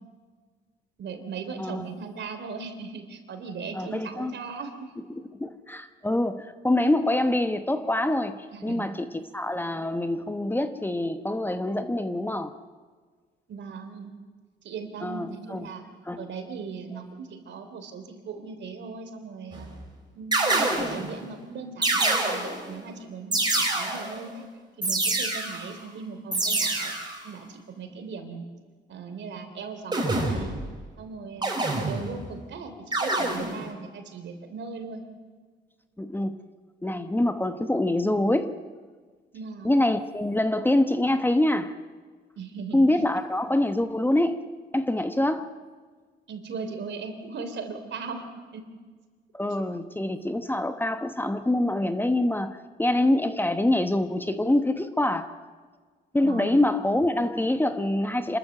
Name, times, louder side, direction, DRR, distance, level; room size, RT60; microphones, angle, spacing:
voice 1, 1.0-4.9 8.5-8.9 13.5-14.1 14.6-15.8 16.2-19.7 20.1-24.4 24.8-26.9 27.2-28.5 28.9-30.6 31.0-35.0 39.3-39.8 42.4-42.8 46.3-48.6 56.2-56.6, right 5 dB, 65° right, 7 dB, 3.2 m, -38 dB
voice 2, 3.7-4.3 5.3-9.1 9.3-12.5 15.0-15.7 16.1-16.3 36.0-36.4 36.8-38.6 39.6-41.8 42.7-44.5 44.7-45.5 49.3-55.3 56.1-58.4, left 1 dB, 10° left, 9 dB, 1.0 m, -25 dB
sound 1, 19.5-19.8 20.3-21.1 21.8-22.7 23.3-24.2 24.8-25.7 26.3-27.2 29.9-30.7 31.4-32.3 32.9-33.7, right 2 dB, 20° right, 4.6 m, -26 dB
27.5 x 13.5 x 7.7 m, 1.5 s
cardioid pair, 90°, 20 cm